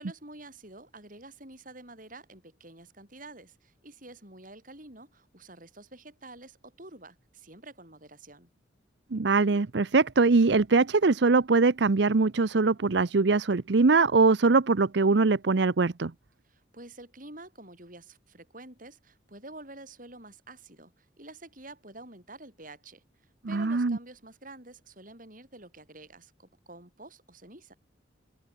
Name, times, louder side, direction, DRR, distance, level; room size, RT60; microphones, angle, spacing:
voice 1, 0.0-8.5 16.4-23.0 23.5-27.7, right 2 dB, 45° right, 7.9 m, -48 dB
voice 2, 9.1-16.1 23.4-24.0, right 3 dB, 65° right, 0.7 m, -22 dB
open air
head